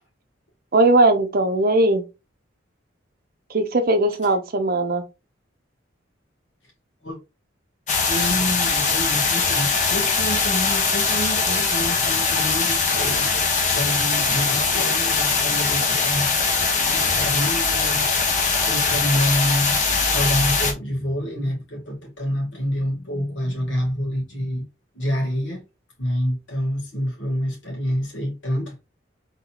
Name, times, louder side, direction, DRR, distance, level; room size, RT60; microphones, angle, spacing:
voice 1, 0.7-2.0 3.5-5.0, right 2 dB, 50° right, 0.7 m, -19 dB
sound 1, 7.9-20.7, left 4 dB, 40° left, 1.1 m, -21 dB
voice 2, 8.1-13.3 13.7-18.1 18.6-19.8 20.1-24.6 24.9-25.6 26.0-28.8, equal, 70° left, 2.3 m, -27 dB
4.0 x 3.9 x 2.9 m
head